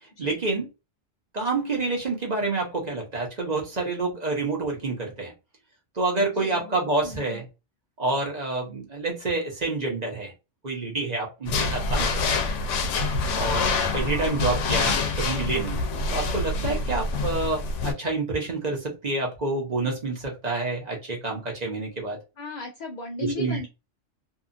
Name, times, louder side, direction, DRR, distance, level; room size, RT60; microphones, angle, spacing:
voice 1, 0.2-0.6 1.3-5.3 6.0-7.4 8.0-10.3 10.6-12.4 13.4-15.8 16.1-22.2 23.2-23.7, right 3 dB, 40° right, -1 dB, 0.9 m, -28 dB
voice 2, 6.3-7.4 16.6-16.8 22.4-23.7, left 2 dB, 55° left, 1 dB, 0.5 m, -37 dB
sound 1, 11.5-17.9, left 3 dB, 80° left, 0.9 m, -26 dB
2.8 x 2.3 x 2.5 m, 0.27 s
omnidirectional pair, 1.2 m